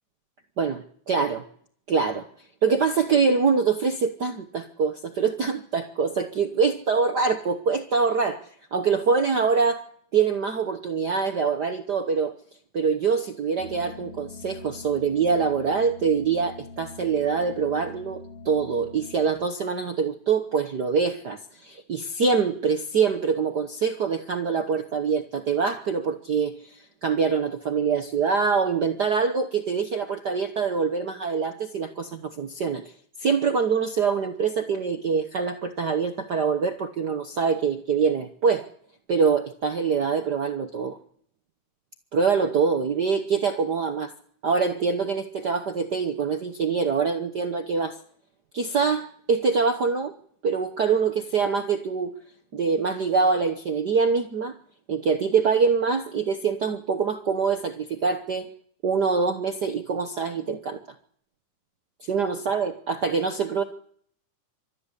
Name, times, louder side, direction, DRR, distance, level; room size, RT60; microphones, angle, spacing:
voice 1, 1.1-1.4 1.9-2.3 2.6-8.4 8.7-9.8 10.1-12.3 12.7-32.8 33.2-38.7 39.1-41.0 42.1-44.1 44.4-48.0 48.5-50.1 50.4-52.1 52.5-54.5 54.9-58.5 58.8-60.8 62.0-63.6, right 5 dB, 85° right, 7 dB, 0.9 m, -24 dB
sound 1, 13.6-19.3, left 3 dB, 40° left, 2.9 m, -43 dB
26.5 x 13.5 x 9.8 m, 0.63 s
omnidirectional pair, 3.8 m